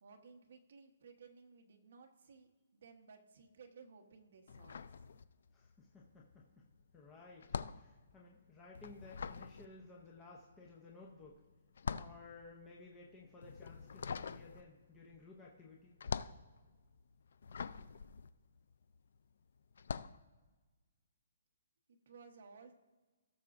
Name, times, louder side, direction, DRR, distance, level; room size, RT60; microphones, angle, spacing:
voice 1, 0.0-4.9 21.9-22.7, right 5 dB, 50° right, 3 dB, 1.1 m, -58 dB
sound 1, 4.5-5.7 6.0-19.2 19.7-20.2, left 5 dB, 55° left, 0.3 m, -45 dB
voice 2, 5.5-6.4 6.9-11.4 12.0-15.9, left 3 dB, 10° left, -2 dB, 0.7 m, -56 dB
17.0 x 7.0 x 2.5 m, 1.3 s
hypercardioid pair, 180°, 0 cm